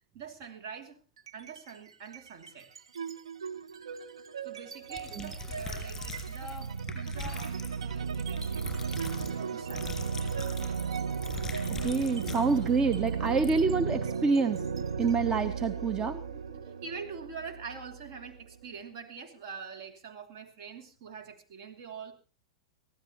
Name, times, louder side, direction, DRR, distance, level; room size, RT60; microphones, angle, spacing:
voice 1, 0.1-1.0 1.3-2.7 4.4-9.9 16.6-22.1, right 5 dB, 50° right, 4 dB, 2.6 m, -45 dB
sound 1, 1.2-1.7 2.1-18.7, right 6 dB, 70° right, 0.8 m, -35 dB
sound 2, 4.9-12.7 13.1-13.2 13.4-13.5, left 5 dB, 10° left, 5.8 m, -43 dB
voice 2, 11.8-16.6, right 4 dB, 20° right, 9 dB, 0.8 m, -28 dB
23.0 x 16.0 x 3.0 m, 0.35 s
figure-of-eight pair, 95°, 3 cm